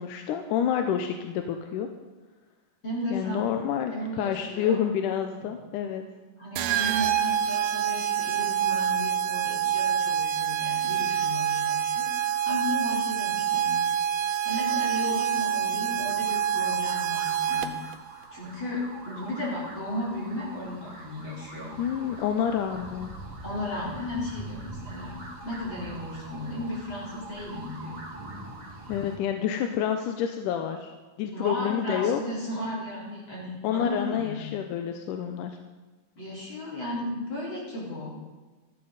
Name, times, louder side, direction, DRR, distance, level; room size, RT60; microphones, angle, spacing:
voice 1, 0.0-1.9 3.1-6.0 21.8-23.2 28.9-30.9 31.2-32.2 33.6-35.6, left 9 dB, 85° left, 5 dB, 2.3 m, -28 dB
voice 2, 2.8-3.4 3.9-4.8 6.4-13.9 14.4-17.8 18.3-21.8 23.4-28.0 31.3-34.6 36.2-38.3, left 1 dB, 35° left, -6 dB, 4.6 m, -35 dB
sound 1, 6.6-18.0, right 9 dB, 80° right, 2.3 m, -26 dB
sound 2, 15.8-29.2, right 2 dB, 40° right, 3.9 m, -44 dB
14.0 x 13.5 x 4.0 m, 1.3 s
omnidirectional pair, 3.7 m